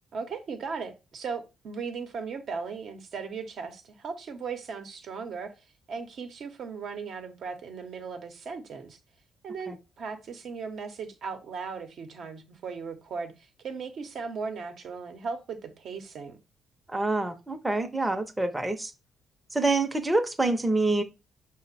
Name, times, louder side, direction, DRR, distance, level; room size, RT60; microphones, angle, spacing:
voice 1, 0.1-5.5 5.9-9.0 9.4-16.4, right 5 dB, 65° right, 0.7 m, -37 dB
voice 2, 16.9-18.9 19.5-21.0, right 2 dB, 10° right, 0.6 m, -26 dB
5.1 x 2.1 x 4.0 m
cardioid pair, 90°, 0 cm